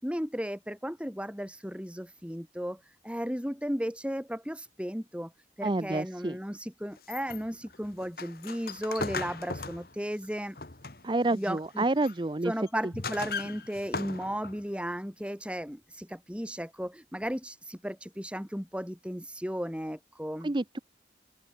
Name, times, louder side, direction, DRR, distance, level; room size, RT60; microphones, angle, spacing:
voice 1, 0.0-5.3 5.6-10.6 11.3-11.8 12.4-20.5, equal, 5° right, 4.4 m, -35 dB
voice 2, 5.6-6.4 11.0-12.5 12.8-12.9 20.4-20.8, right 2 dB, 25° right, 0.5 m, -29 dB
sound 1, 7.0-11.2 11.6-12.2 12.7-14.6, left 4 dB, 55° left, 1.6 m, -38 dB
open air
head